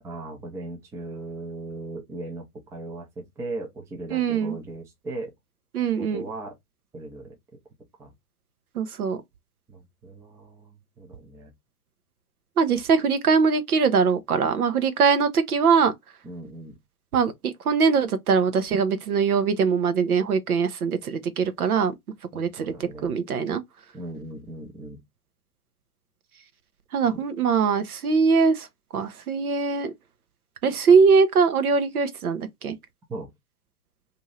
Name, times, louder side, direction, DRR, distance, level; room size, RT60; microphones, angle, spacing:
voice 1, 0.0-5.3 6.0-6.6 6.9-7.4 8.0-8.1 9.7-11.5 16.2-16.8 22.3-23.1 23.9-25.0 27.0-27.2 33.1-33.3, right 2 dB, 5° right, 0.5 m, -38 dB
voice 2, 4.1-4.6 5.7-6.2 8.7-9.2 12.6-15.9 17.1-21.9 22.3-23.6 26.9-28.7 28.9-29.9 30.6-32.8, right 5 dB, 75° right, 0.8 m, -22 dB
2.7 x 2.6 x 3.1 m
figure-of-eight pair, 105°, 45 cm